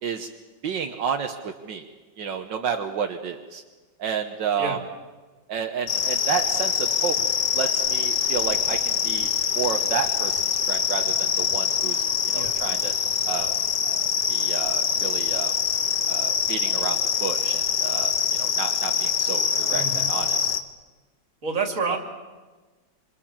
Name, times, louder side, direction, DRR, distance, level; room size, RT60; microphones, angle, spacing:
voice 1, 0.6-1.9 2.2-3.6 4.0-4.8 5.5-7.1 7.5-9.3 9.5-12.9 13.3-13.5 13.8-15.5 16.1-20.5 21.9-22.0, right 7 dB, 75° right, 4 dB, 1.8 m, -31 dB
sound 1, 5.9-20.6, left 8 dB, 70° left, 1.8 m, -24 dB
voice 2, 19.7-20.1 21.4-22.0, right 4 dB, 45° right, 4 dB, 3.0 m, -28 dB
26.0 x 26.0 x 7.4 m, 1.3 s
omnidirectional pair, 2.0 m